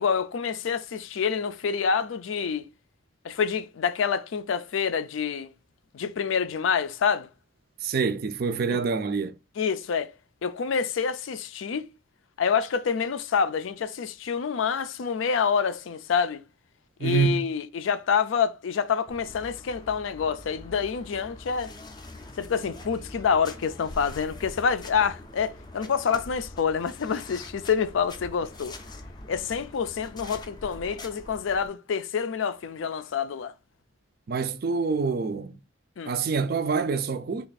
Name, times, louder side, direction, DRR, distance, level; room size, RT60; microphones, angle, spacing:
voice 1, 0.0-2.6 3.2-5.5 5.9-7.3 8.7-8.8 9.6-10.1 10.4-11.9 12.4-16.4 17.0-21.7 22.4-28.8 29.3-33.5 36.0-36.1, left 6 dB, 80° left, 0.4 m, -27 dB
voice 2, 7.8-9.3 17.0-17.5 34.3-35.6 36.1-37.5, right 5 dB, 50° right, 0.4 m, -26 dB
sound 1, 19.1-31.7, left 2 dB, 20° left, 0.4 m, -44 dB
3.4 x 2.4 x 3.9 m
head